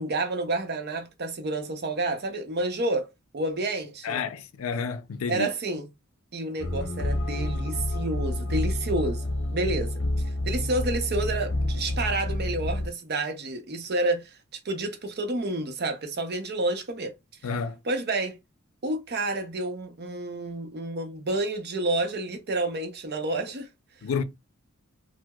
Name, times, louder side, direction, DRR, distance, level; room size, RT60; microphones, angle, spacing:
voice 1, 0.0-3.1 3.3-4.2 5.3-5.9 6.3-10.0 10.4-14.4 14.6-17.1 17.8-18.4 18.8-23.7, right 2 dB, 50° right, 0.7 m, -29 dB
voice 2, 4.0-5.5 17.4-17.8 24.0-24.2, left 6 dB, 90° left, 0.4 m, -30 dB
sound 1, 6.6-12.9, left 1 dB, 60° left, 0.9 m, -29 dB
4.6 x 2.0 x 2.3 m
head